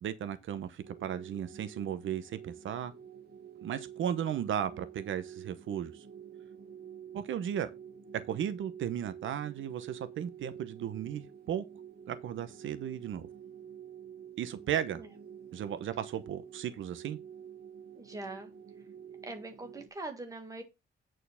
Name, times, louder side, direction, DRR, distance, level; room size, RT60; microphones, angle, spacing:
voice 1, 0.0-2.9 3.6-6.0 7.1-7.7 8.3-11.6 12.1-13.3 14.4-15.0 15.5-17.2, right 9 dB, 75° right, 0.9 m, -35 dB
sound 1, 0.8-19.9, right 8 dB, 50° right, 1.8 m, -49 dB
voice 2, 17.9-18.5 19.2-20.6, right 2 dB, 15° right, 1.7 m, -42 dB
8.9 x 4.6 x 5.6 m
wide cardioid pair, 180°, 20 cm